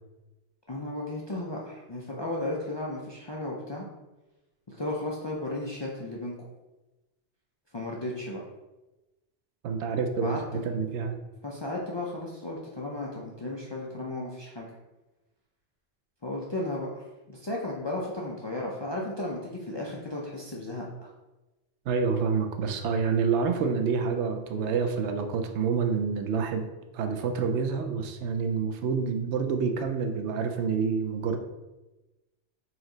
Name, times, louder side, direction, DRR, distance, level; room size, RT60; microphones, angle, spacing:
voice 1, 0.7-3.9 4.7-6.3 7.7-8.4 10.2-10.7 11.4-14.7 16.2-21.1, left 1 dB, 40° left, -3 dB, 0.3 m, -34 dB
voice 2, 9.6-10.4 10.6-11.2 21.9-26.6 26.9-31.4, right 5 dB, 85° right, 6 dB, 0.9 m, -27 dB
4.3 x 2.9 x 3.8 m, 1.1 s
omnidirectional pair, 1.1 m